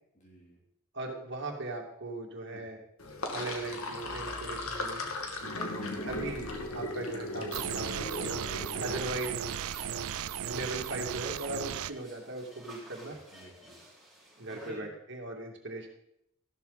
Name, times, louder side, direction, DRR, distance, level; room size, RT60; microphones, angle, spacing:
voice 1, 0.1-0.6 2.5-2.6 5.5-6.2 8.6-9.0 13.1-13.8 14.5-14.9, left 2 dB, 35° left, -3 dB, 3.1 m, -52 dB
voice 2, 0.9-2.8 3.3-5.1 6.1-8.1 8.8-9.4 10.4-13.2 14.4-15.9, right 2 dB, 55° right, 1 dB, 2.5 m, -38 dB
Sink (filling or washing), 3.0-9.3, left 2 dB, 80° left, 2.2 m, -37 dB
sound 1, 7.5-11.9, right 9 dB, 80° right, 0.4 m, -36 dB
sound 2, 8.4-14.7, right 1 dB, ahead, 5.1 m, -53 dB
15.0 x 12.5 x 4.2 m, 0.75 s
head